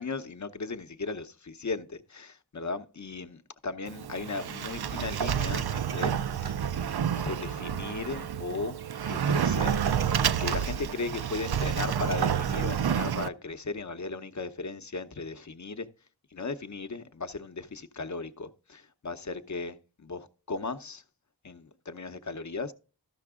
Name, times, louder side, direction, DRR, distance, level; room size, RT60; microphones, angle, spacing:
voice 1, 0.0-6.2 6.4-6.5 7.1-8.8 9.1-9.8 10.4-15.9 16.3-21.0 21.4-22.7, left 3 dB, 45° left, 0.8 m, -36 dB
Sliding door, 3.9-13.3, right 8 dB, 75° right, 0.5 m, -29 dB
13.0 x 5.9 x 3.6 m
wide cardioid pair, 55°, 39 cm